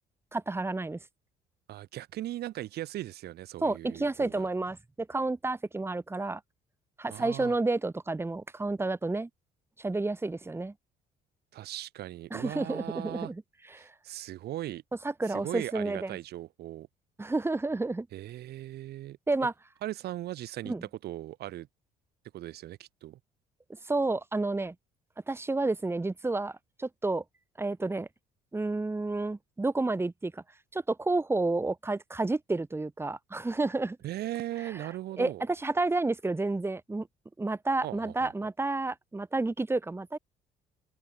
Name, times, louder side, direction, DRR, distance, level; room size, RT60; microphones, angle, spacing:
voice 1, 0.3-1.0 3.6-6.4 7.0-9.3 9.8-10.7 12.3-13.4 13.7-13.9 15.0-16.2 17.2-18.1 19.3-19.5 20.7-20.9 23.8-24.7 25.3-27.2 27.6-28.1 28.5-30.4 30.7-34.0 34.7-34.9 35.2-37.1 37.4-40.2, right 2 dB, 15° right, 3.7 m, -30 dB
voice 2, 1.7-4.5 7.1-7.6 11.5-13.3 13.8-14.8 15.3-16.9 18.1-19.2 19.8-20.7 21.0-21.7 22.3-23.2 34.0-35.4 37.8-38.3, right 14 dB, 70° right, 5.3 m, -38 dB
cardioid pair, 110°, 17 cm